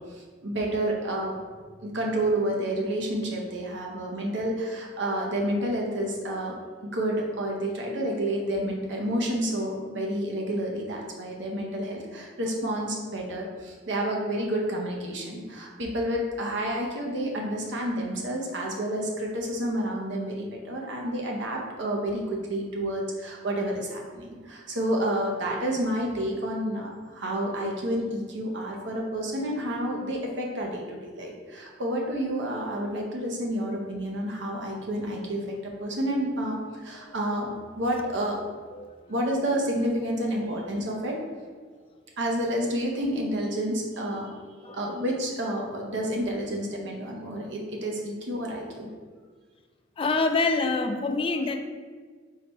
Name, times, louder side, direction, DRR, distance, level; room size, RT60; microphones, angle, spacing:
voice 1, 0.1-1.3 1.8-6.5 6.8-38.4 39.1-41.2 42.2-48.9, right 1 dB, 65° right, -1 dB, 0.8 m, -29 dB
voice 2, 50.0-51.6, left 3 dB, 30° left, 6 dB, 0.3 m, -25 dB
4.2 x 3.9 x 3.0 m, 1.5 s
head